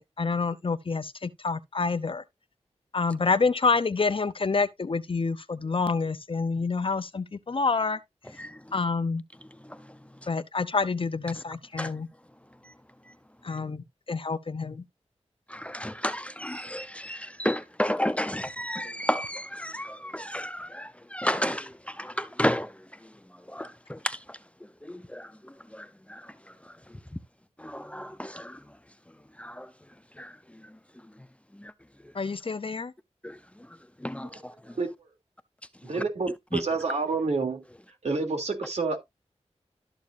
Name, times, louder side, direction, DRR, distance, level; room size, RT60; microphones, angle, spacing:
voice 1, 0.0-2.2 2.9-8.0 8.7-9.2 10.3-12.1 13.4-14.8 32.1-32.9, left 4 dB, 50° left, 0.8 m, -28 dB
voice 2, 15.7-19.9 20.1-20.7 21.1-21.6 22.2-22.7 23.6-23.7 27.9-28.3 34.0-34.3, equal, 10° left, 0.8 m, -29 dB
voice 3, 35.8-37.6 38.0-39.0, right 4 dB, 70° right, 3.0 m, -28 dB
13.0 x 6.7 x 2.6 m
wide cardioid pair, 65°, 12 cm